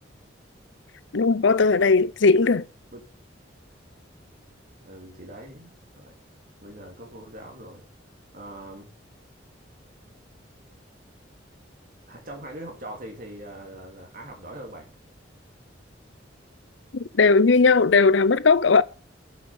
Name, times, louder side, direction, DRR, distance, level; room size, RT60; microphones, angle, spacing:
voice 1, 1.1-2.7 16.9-18.8, left 4 dB, 75° left, 0.7 m, -18 dB
voice 2, 4.8-6.2 6.6-7.9 8.3-8.9 12.1-14.9, right 1 dB, 50° right, 2.9 m, -42 dB
10.5 x 6.5 x 7.2 m
head